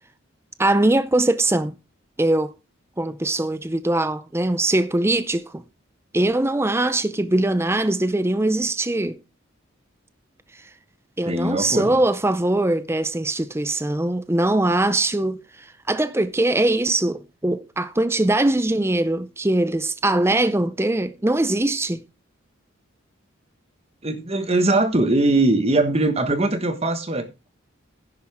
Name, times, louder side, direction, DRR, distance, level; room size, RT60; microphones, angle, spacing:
voice 1, 0.6-1.7 2.2-2.5 3.0-5.6 6.1-9.2 11.2-22.0, right 2 dB, 10° right, 0.5 m, -21 dB
voice 2, 11.3-12.0 24.0-27.3, right 2 dB, 30° right, 1.4 m, -21 dB
11.5 x 10.5 x 3.5 m
head